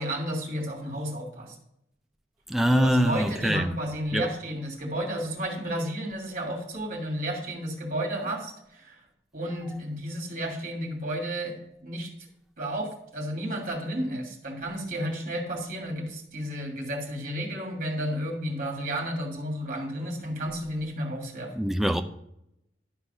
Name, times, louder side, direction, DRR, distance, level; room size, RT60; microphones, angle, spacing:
voice 1, 0.0-1.5 2.7-9.0 9.3-12.1 12.6-21.6, equal, 45° right, 2.6 m, -32 dB
voice 2, 2.5-3.7 4.1-4.3 21.5-22.0, equal, ahead, 0.5 m, -23 dB
11.5 x 4.1 x 5.6 m
head